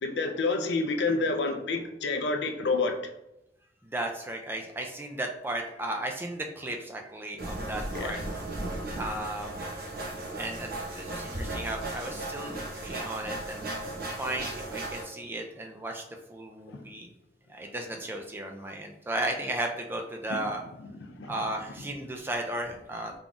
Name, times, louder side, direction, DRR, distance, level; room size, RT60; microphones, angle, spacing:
voice 1, 0.0-3.0 7.9-8.2 13.8-13.9 16.7-16.8 20.3-20.4 20.8-21.3, left 3 dB, 75° left, 4 dB, 0.5 m, -29 dB
voice 2, 3.8-8.2 9.0-9.7 10.3-13.7 14.2-16.0 16.3-17.1 17.5-20.6 21.3-23.1, right 1 dB, 10° right, 2 dB, 0.3 m, -35 dB
sound 1, 7.4-15.0, right 1 dB, 55° right, 0.9 m, -36 dB
3.8 x 3.6 x 2.3 m, 0.88 s
head